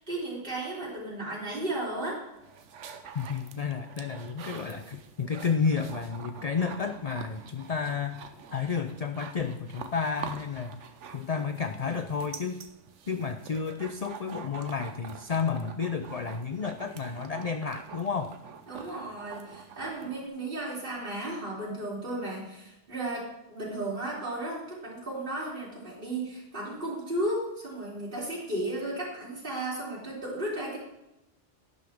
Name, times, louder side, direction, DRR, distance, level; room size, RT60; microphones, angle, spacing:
voice 1, 0.0-2.3 18.7-30.8, right 1 dB, 45° right, -7 dB, 3.5 m, -34 dB
sound 1, 2.2-20.3, right 6 dB, 75° right, 1.2 m, -45 dB
voice 2, 3.1-8.2 8.5-10.9 11.1-12.6 13.1-18.4, left 5 dB, 45° left, 8 dB, 0.5 m, -31 dB
11.5 x 11.0 x 3.6 m, 0.92 s
omnidirectional pair, 1.2 m